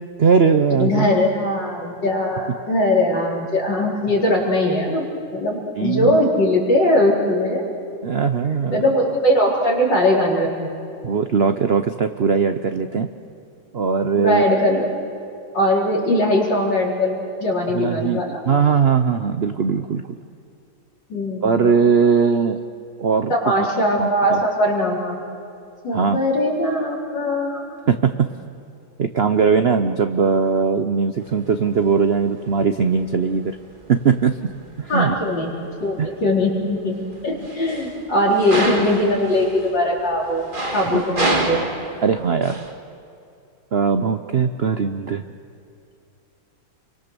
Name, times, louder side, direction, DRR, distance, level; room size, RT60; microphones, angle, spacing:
voice 1, 0.2-1.1 5.8-6.2 8.0-8.8 11.0-13.1 13.7-14.4 17.7-20.0 21.4-22.6 23.0-23.3 24.0-24.4 25.9-26.2 27.9-28.3 29.0-33.6 33.9-34.5 34.8-35.2 36.0-36.1 40.9-41.0 42.0-42.6 43.7-45.2, right 6 dB, 85° right, 9 dB, 0.5 m, -19 dB
voice 2, 0.7-5.0 5.3-7.7 8.7-10.7 14.1-14.9 15.5-18.4 21.1-21.7 23.3-25.2 25.8-27.7 34.9-35.5 35.8-37.0 37.2-40.5 40.7-41.6, left 1 dB, 65° left, -3 dB, 4.9 m, -20 dB
sound 1, 31.2-42.7, right 1 dB, 25° right, 2.1 m, -30 dB
29.0 x 24.0 x 6.9 m, 2.6 s
omnidirectional pair, 2.2 m